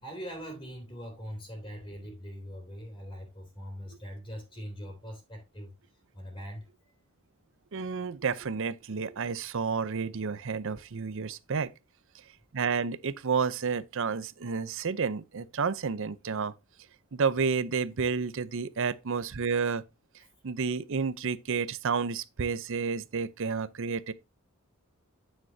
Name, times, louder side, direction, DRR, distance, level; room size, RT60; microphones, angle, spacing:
voice 1, 0.0-5.7 6.1-6.7, equal, 25° left, 2.9 m, -42 dB
voice 2, 7.7-11.7 12.5-16.5 17.1-19.8 20.4-24.1, right 5 dB, 65° right, 0.6 m, -30 dB
8.9 x 7.7 x 2.7 m
head